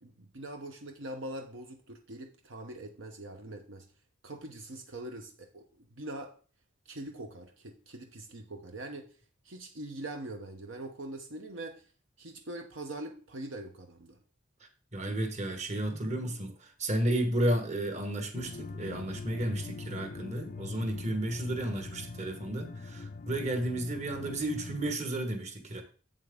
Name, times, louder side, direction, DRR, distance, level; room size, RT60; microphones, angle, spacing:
voice 1, 0.0-3.9 4.2-5.6 5.9-6.3 6.9-9.1 9.4-11.8 12.2-14.2, right 1 dB, 70° right, 0.8 m, -42 dB
voice 2, 14.9-25.8, right 1 dB, 35° right, 1.3 m, -32 dB
sound 1, 18.3-24.9, left 3 dB, 40° left, 0.4 m, -42 dB
7.8 x 7.4 x 3.6 m
head